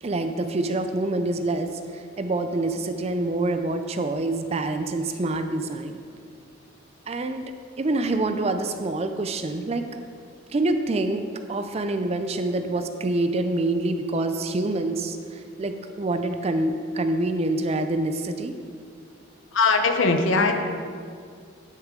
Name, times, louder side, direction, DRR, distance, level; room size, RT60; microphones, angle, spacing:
voice 1, 0.0-6.0 7.1-7.4 7.8-9.9 10.5-18.5, right 2 dB, 30° right, 8 dB, 0.4 m, -26 dB
voice 2, 19.5-20.5, left 3 dB, 75° left, 5 dB, 0.8 m, -20 dB
10.5 x 6.2 x 3.8 m, 2.2 s
head